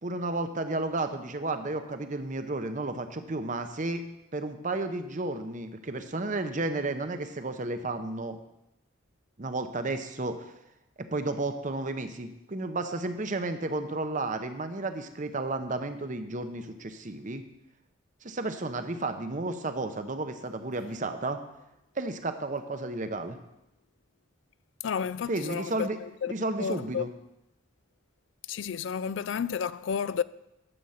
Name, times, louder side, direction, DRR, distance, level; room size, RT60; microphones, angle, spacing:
voice 1, 0.0-4.0 4.3-8.4 9.4-10.4 11.1-17.4 18.2-21.4 22.0-23.4 25.3-26.0 26.3-27.1, right 2 dB, 40° right, 0.8 m, -32 dB
voice 2, 24.8-26.3 26.6-27.1 28.5-30.2, left 7 dB, 65° left, 0.3 m, -31 dB
11.0 x 7.7 x 5.7 m
head